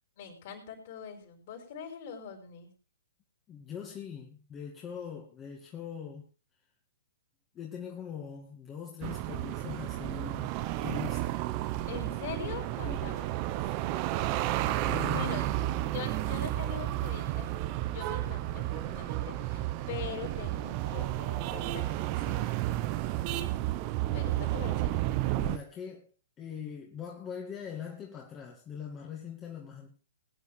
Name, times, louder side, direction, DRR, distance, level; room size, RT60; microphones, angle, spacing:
voice 1, 0.2-2.7 11.9-13.3 15.1-15.4 15.8-17.5 17.8-22.5 24.1-25.0, left 7 dB, 50° left, 5.9 m, -43 dB
voice 2, 3.5-6.3 7.5-10.5 10.8-11.4 12.8-13.2 13.6-13.8 14.8-15.3 25.4-26.1 26.4-30.0, left 7 dB, 20° left, 2.4 m, -41 dB
sound 1, 9.0-25.6, right 15 dB, 35° right, 1.1 m, -32 dB
22.5 x 9.4 x 3.5 m
figure-of-eight pair, 120°, 0 cm